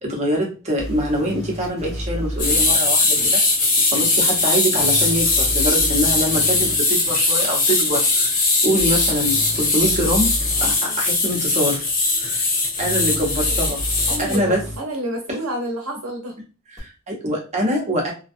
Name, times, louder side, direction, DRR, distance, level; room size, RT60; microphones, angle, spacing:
voice 1, 0.0-3.4 3.9-11.9 12.2-12.5 12.8-13.8 14.2-14.6 15.3-15.4 16.7-18.1, equal, 30° right, -1 dB, 0.8 m, -24 dB
sound 1, 0.8-2.7 4.8-6.8 8.8-10.7 12.8-14.8 16.8-16.9, equal, 15° left, 1.1 m, -31 dB
sound 2, 2.4-14.4, left 3 dB, 40° left, 0.7 m, -20 dB
voice 2, 14.1-16.3, right 1 dB, 80° right, 0 dB, 0.6 m, -29 dB
2.5 x 2.3 x 2.4 m, 0.33 s
head